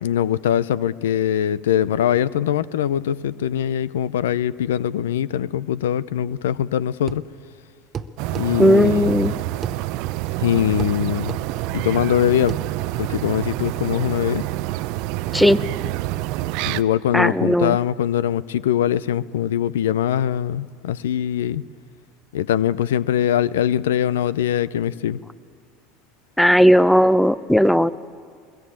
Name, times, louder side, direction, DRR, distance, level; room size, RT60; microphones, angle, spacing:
voice 1, 0.0-7.2 8.3-9.3 10.4-11.4 11.7-12.6 13.0-14.4 16.6-21.7 22.3-25.2, left 10 dB, 80° left, 19 dB, 0.5 m, -22 dB
sound 1, 7.1-7.3 7.9-8.5 9.6-9.8 10.8-11.0 11.3-11.5 12.5-12.7, right 7 dB, 35° right, 1.0 m, -30 dB
sound 2, 8.2-16.8, right 17 dB, 65° right, 0.6 m, -27 dB
voice 2, 8.6-9.3 15.3-15.6 17.1-17.8 26.4-27.9, equal, ahead, 16 dB, 0.7 m, -16 dB
22.0 x 21.5 x 8.8 m, 2.1 s
hypercardioid pair, 80°, 0 cm